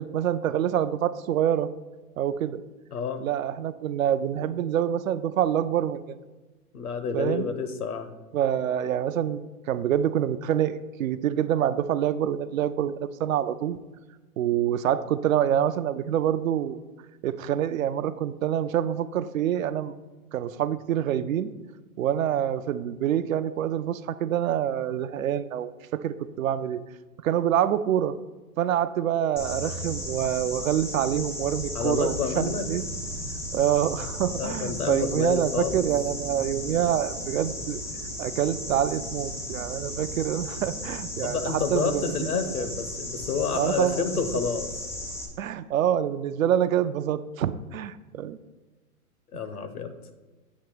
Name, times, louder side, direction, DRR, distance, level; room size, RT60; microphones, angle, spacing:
voice 1, 0.0-1.7 2.2-2.6 3.2-6.2 7.1-7.5 8.3-9.4 9.7-13.8 14.4-16.8 17.2-19.9 20.3-21.5 22.0-26.8 27.2-28.1 28.6-32.8 33.5-37.8 38.2-42.3 43.5-44.0 45.4-48.4, right 10 dB, 65° right, 13 dB, 0.5 m, -26 dB
voice 2, 2.9-3.2 6.7-8.1 31.7-32.7 34.4-35.8 41.2-44.7 49.3-49.9, left 6 dB, 75° left, 9 dB, 1.1 m, -29 dB
sound 1, 29.4-45.3, left 1 dB, 5° left, 0.5 m, -35 dB
8.1 x 2.9 x 6.0 m, 1.2 s
hypercardioid pair, 130°, 45 cm